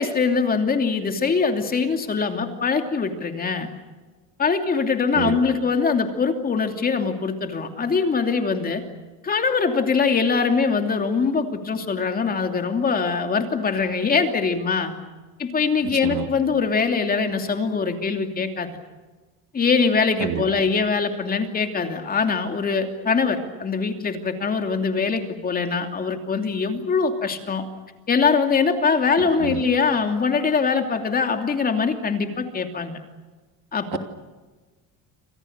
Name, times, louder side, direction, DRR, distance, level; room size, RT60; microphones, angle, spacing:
voice 1, 0.0-3.7 4.4-8.8 9.2-14.9 15.4-18.7 19.5-27.6 28.1-33.0 33.7-34.0, left 5 dB, 25° left, 5 dB, 2.8 m, -22 dB
voice 2, 15.8-16.3 20.2-20.4 29.4-29.6 33.9-34.0, right 11 dB, 70° right, 6 dB, 2.9 m, -28 dB
29.0 x 26.0 x 6.7 m, 1.3 s
cardioid pair, 155°, 36 cm